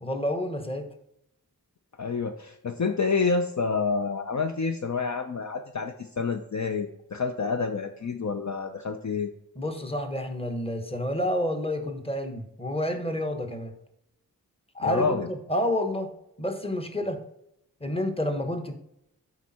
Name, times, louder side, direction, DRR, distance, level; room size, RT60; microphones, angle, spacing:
voice 1, 0.0-0.9 9.6-13.7 14.7-16.1 16.4-17.2 17.8-18.7, left 1 dB, 15° left, 6 dB, 1.2 m, -29 dB
voice 2, 2.0-9.3 14.8-15.3, left 4 dB, 45° left, 6 dB, 0.6 m, -28 dB
8.1 x 5.2 x 4.2 m, 0.79 s
wide cardioid pair, 70°, 38 cm